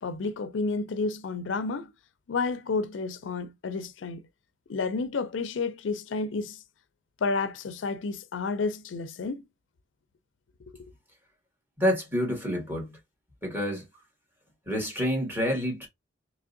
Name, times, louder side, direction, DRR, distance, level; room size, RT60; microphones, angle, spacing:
voice 1, 0.0-1.9 2.3-4.2 4.7-6.6 7.2-9.4, left 4 dB, 85° left, 0.5 m, -30 dB
voice 2, 11.8-13.0 13.4-13.9 14.7-15.9, equal, 10° right, 1.8 m, -28 dB
3.5 x 3.1 x 2.5 m
head